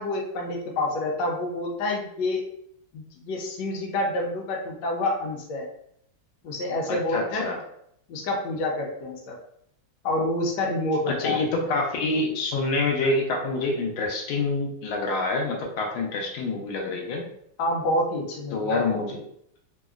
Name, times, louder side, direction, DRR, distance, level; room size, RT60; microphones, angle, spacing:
voice 1, 0.0-2.4 2.9-5.7 6.4-7.4 8.1-9.4 10.0-11.4 17.6-18.8, left 1 dB, 65° left, -1 dB, 1.2 m, -28 dB
voice 2, 6.9-7.6 11.1-17.3 18.5-19.3, left 3 dB, 85° left, 0 dB, 1.5 m, -27 dB
3.6 x 2.0 x 2.3 m, 0.70 s
omnidirectional pair, 2.3 m